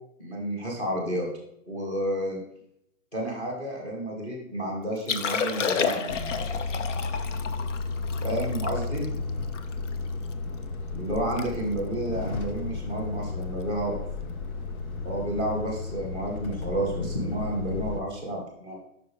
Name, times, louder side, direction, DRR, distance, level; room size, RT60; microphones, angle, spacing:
voice 1, 0.2-1.3 1.7-2.4 3.1-6.4 8.2-9.2 10.9-14.0 15.0-18.8, right 1 dB, 15° left, -1 dB, 1.5 m, -31 dB
Liquid, 5.0-10.3 10.8-10.9 11.2-11.5 11.7-12.0 12.6-12.8 14.3-14.4, left 6 dB, 60° left, 0.7 m, -31 dB
Truck, 6.1-18.0, left 3 dB, 80° left, 1.3 m, -33 dB
9.6 x 5.6 x 3.4 m, 0.78 s
hypercardioid pair, 170°, 43 cm